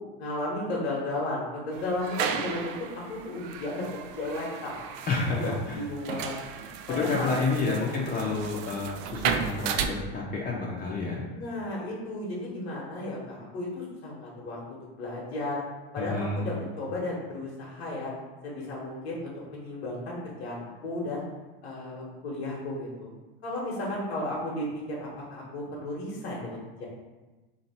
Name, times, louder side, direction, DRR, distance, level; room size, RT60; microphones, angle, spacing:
voice 1, 0.2-4.7 5.3-6.3 6.9-7.3 7.8-8.0 11.3-15.6 15.9-18.1 18.4-21.2 21.6-23.1 23.4-26.9, left 2 dB, 80° left, -3 dB, 1.2 m, -34 dB
sound 1, 1.7-9.9, right 7 dB, 60° right, 0.4 m, -34 dB
voice 2, 5.1-5.8 6.9-11.2 16.0-16.6, left 3 dB, 25° left, -3 dB, 0.7 m, -29 dB
2.9 x 2.8 x 4.2 m, 1.2 s
hypercardioid pair, 95°, 31 cm